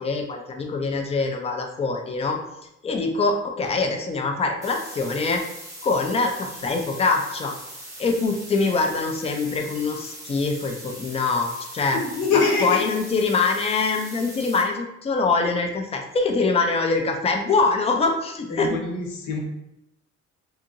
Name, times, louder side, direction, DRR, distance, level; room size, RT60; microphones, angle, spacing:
voice 1, 0.0-2.4 2.8-5.4 5.8-7.5 8.0-12.0 12.3-18.8, left 3 dB, 20° left, 3 dB, 0.3 m, -24 dB
sound 1, 4.6-14.6, right 1 dB, 10° right, 0.7 m, -40 dB
voice 2, 11.9-12.8 18.5-19.4, left 4 dB, 75° left, 0 dB, 0.8 m, -24 dB
2.8 x 2.6 x 2.5 m, 0.84 s
cardioid pair, 130°, 30 cm